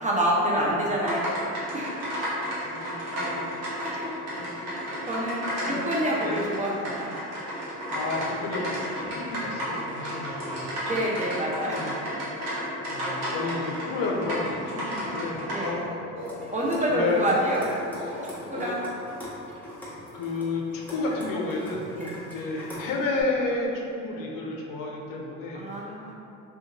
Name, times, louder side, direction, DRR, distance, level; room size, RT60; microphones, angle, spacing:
voice 1, 0.0-1.3 1.7-1.9 3.8-4.1 4.4-4.5 5.1-7.1 10.8-11.8 15.5-15.7 16.5-17.6 18.5-18.8 22.0-22.1 25.5-26.1, right 1 dB, 20° right, -4 dB, 0.5 m, -27 dB
sound 1, 1.0-15.7, equal, 70° right, 1.1 m, -32 dB
voice 2, 2.7-3.5 4.1-4.5 5.6-5.9 6.2-6.4 7.9-10.9 11.7-12.0 12.9-15.9 16.9-17.3 18.6-18.7 20.1-21.9 22.2-25.7, left 3 dB, 60° left, -1 dB, 0.6 m, -31 dB
sound 2, 8.1-8.6 9.0-9.8 10.2-11.4 14.1-18.8, left 1 dB, 40° left, 0.9 m, -41 dB
sound 3, 16.2-23.2, equal, 5° left, 0.9 m, -42 dB
2.4 x 2.4 x 2.8 m, 2.6 s
hypercardioid pair, 60°, 39 cm